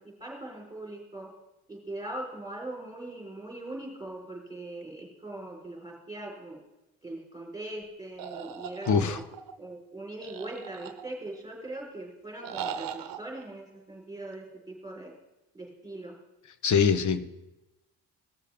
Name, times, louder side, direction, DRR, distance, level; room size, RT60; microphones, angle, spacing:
voice 1, 0.2-1.3 1.7-6.6 7.0-9.2 9.6-15.1 15.5-16.1, right 2 dB, 10° right, -2 dB, 4.2 m, -41 dB
sound 1, 8.2-9.5 10.2-11.4 12.4-13.2, right 8 dB, 65° right, 0.9 m, -39 dB
voice 2, 8.9-9.2 16.6-17.3, left 6 dB, 50° left, 12 dB, 1.0 m, -23 dB
18.0 x 6.7 x 3.5 m, 0.98 s
cardioid pair, 90°, 37 cm